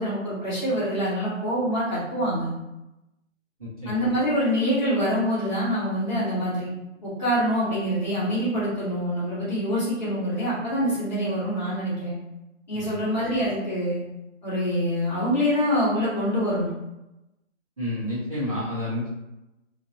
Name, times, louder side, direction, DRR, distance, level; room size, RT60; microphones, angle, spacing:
voice 1, 0.0-2.5 3.8-6.7 7.0-12.2 12.7-14.0 14.4-16.7, equal, 35° left, -9 dB, 1.3 m, -25 dB
voice 2, 3.6-3.9 12.9-13.0 17.8-19.1, left 1 dB, 30° right, -10 dB, 1.0 m, -29 dB
3.7 x 2.6 x 2.7 m, 0.96 s
hypercardioid pair, 180°, 39 cm